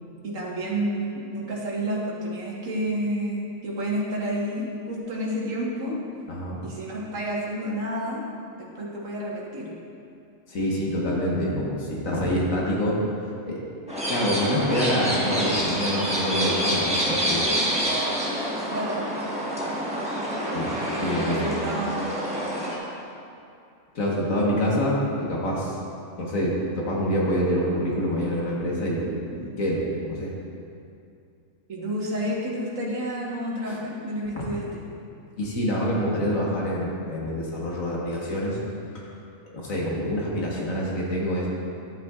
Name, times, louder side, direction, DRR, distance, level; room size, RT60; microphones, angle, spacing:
voice 1, 0.2-6.0 6.6-8.2 8.6-9.7 18.7-19.1 20.3-20.6 21.0-22.4 31.7-34.8, right 1 dB, 65° right, -4 dB, 1.8 m, -30 dB
voice 2, 6.3-6.6 10.5-13.0 13.5-13.6 14.1-17.5 20.5-20.7 21.0-21.6 23.9-25.7 26.2-30.3 33.7-33.8 35.4-38.6 38.9-39.0 39.5-41.5, equal, 65° left, -4 dB, 1.7 m, -26 dB
sound 1, 13.9-22.8, equal, 5° right, 1.2 m, -27 dB
11.5 x 8.2 x 2.4 m, 2.5 s
omnidirectional pair, 1.5 m